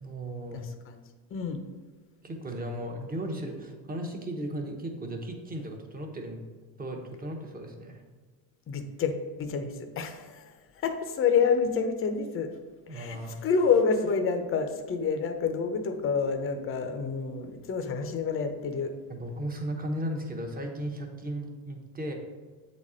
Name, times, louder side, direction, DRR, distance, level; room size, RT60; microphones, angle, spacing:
voice 1, 0.0-0.7 2.2-6.4 6.8-8.0 12.9-13.4 19.1-22.1, right 1 dB, 20° right, 2 dB, 0.9 m, -36 dB
voice 2, 0.5-1.0 1.3-1.6 8.7-9.1 9.4-12.5 12.9-18.9, left 5 dB, 30° left, 6 dB, 0.7 m, -28 dB
8.1 x 4.2 x 4.9 m, 1.4 s
cardioid pair, 150°, 44 cm